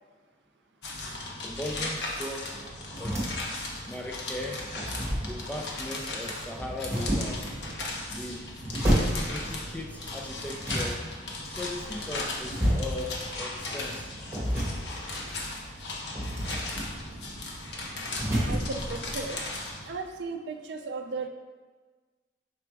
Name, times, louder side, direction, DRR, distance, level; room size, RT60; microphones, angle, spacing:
sound 1, 0.8-19.9, left 2 dB, 60° left, 0.9 m, -37 dB
voice 1, 1.4-2.7 3.0-3.2 3.9-4.6 5.2-7.4 8.1-8.4 9.3-11.0 11.5-14.1, left 1 dB, 10° left, 0 dB, 0.3 m, -38 dB
sound 2, 2.5-19.2, equal, 15° right, 1.8 m, -33 dB
voice 2, 16.4-16.9 18.4-19.4 19.9-21.3, right 4 dB, 65° right, 4 dB, 0.4 m, -36 dB
5.9 x 3.5 x 4.6 m, 1.4 s
head